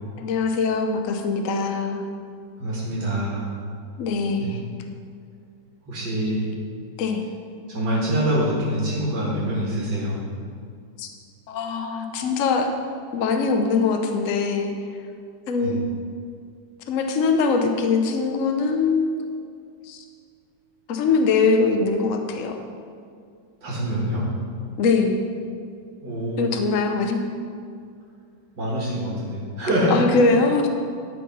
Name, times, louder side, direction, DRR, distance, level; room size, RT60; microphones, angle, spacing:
voice 1, 0.2-2.0 4.0-4.6 7.0-7.2 11.0-11.1 11.5-12.7 13.1-14.7 15.5-15.8 16.9-19.1 19.8-20.0 20.9-22.6 24.8-25.2 26.4-27.2 29.9-30.7, left 4 dB, 55° left, 5 dB, 1.0 m, -22 dB
voice 2, 2.6-3.6 4.4-4.5 5.9-6.5 7.7-10.2 15.6-15.7 23.6-24.3 26.0-26.4 28.6-30.1, equal, 60° right, -7 dB, 2.2 m, -25 dB
12.0 x 4.7 x 5.4 m, 2.2 s
omnidirectional pair, 2.0 m